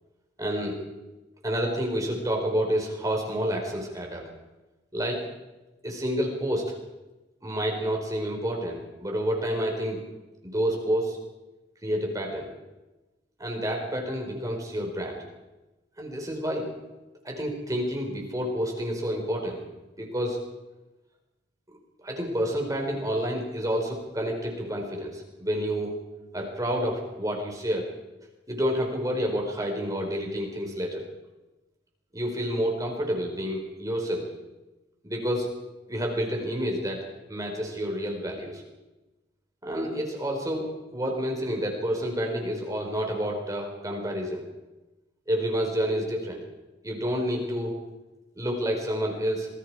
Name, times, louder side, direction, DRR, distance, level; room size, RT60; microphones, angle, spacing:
voice 1, 0.4-0.8 1.4-4.2 4.9-5.2 5.8-6.8 7.4-10.0 10.4-11.2 11.8-12.5 13.4-15.2 16.0-16.7 17.2-19.6 20.0-20.4 22.0-25.9 26.3-27.9 28.5-31.0 32.1-34.3 35.0-35.5 35.9-38.6 39.6-44.4 45.3-46.4 46.8-47.7 48.4-49.5, equal, 20° right, 1 dB, 4.7 m, -29 dB
27.0 x 22.5 x 4.9 m, 1.1 s
head